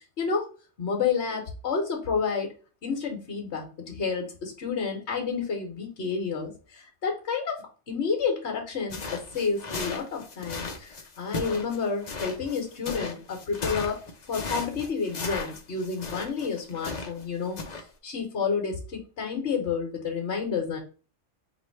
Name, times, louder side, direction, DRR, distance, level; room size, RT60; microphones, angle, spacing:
voice 1, 0.2-0.5 0.8-2.5 2.8-14.0 14.3-20.8, left 5 dB, 60° left, 1 dB, 1.4 m, -30 dB
sound 1, 8.9-17.2 17.6-17.8, left 3 dB, 40° left, 0.7 m, -36 dB
3.6 x 2.7 x 4.5 m, 0.36 s
omnidirectional pair, 1.3 m